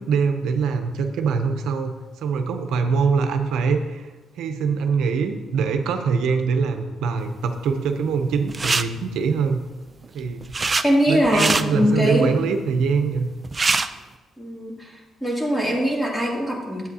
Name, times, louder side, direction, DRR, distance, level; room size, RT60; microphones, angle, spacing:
voice 1, 0.0-9.6 10.1-10.4 11.1-13.3, right 5 dB, 80° right, 6 dB, 0.6 m, -23 dB
sound 1, 8.5-8.8 10.0-10.8 11.2-11.6 13.2-13.3 13.4-13.9, right 4 dB, 30° right, 0.4 m, -22 dB
voice 2, 10.8-12.3 14.4-14.9 15.2-16.9, equal, 5° left, -4 dB, 2.6 m, -22 dB
11.0 x 8.0 x 2.8 m, 1.3 s
cardioid pair, 90°, 0 cm